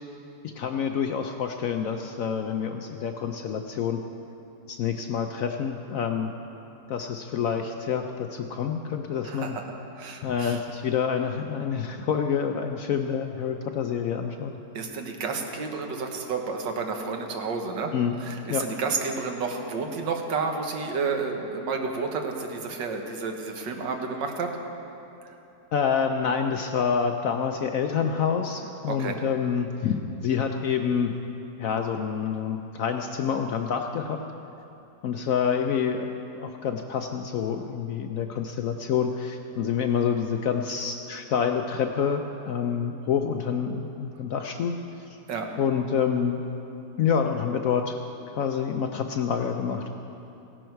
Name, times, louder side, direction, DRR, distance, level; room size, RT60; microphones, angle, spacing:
voice 1, 0.6-4.0 4.7-6.3 6.9-9.5 10.2-14.5 17.9-18.1 18.5-18.6 25.7-31.1 31.6-34.2 35.0-36.1 36.3-44.7 45.6-46.4 47.0-48.0 48.3-49.9, left 7 dB, 70° left, 5 dB, 0.8 m, -27 dB
voice 2, 9.2-9.7 9.9-10.6 14.7-24.5 28.9-29.2 45.3-45.5, right 4 dB, 90° right, 3 dB, 1.8 m, -31 dB
16.5 x 11.0 x 4.6 m, 2.9 s
omnidirectional pair, 1.9 m